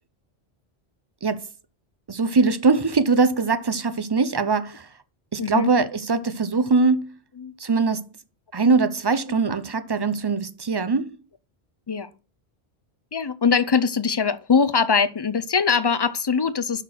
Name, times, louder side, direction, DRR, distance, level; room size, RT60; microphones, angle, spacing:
voice 1, 2.1-4.9 5.3-7.1 7.6-8.1 8.5-11.1, right 4 dB, 30° right, 0.5 m, -22 dB
voice 2, 13.1-16.8, left 5 dB, 35° left, 0.4 m, -22 dB
6.6 x 5.8 x 6.0 m
omnidirectional pair, 1.1 m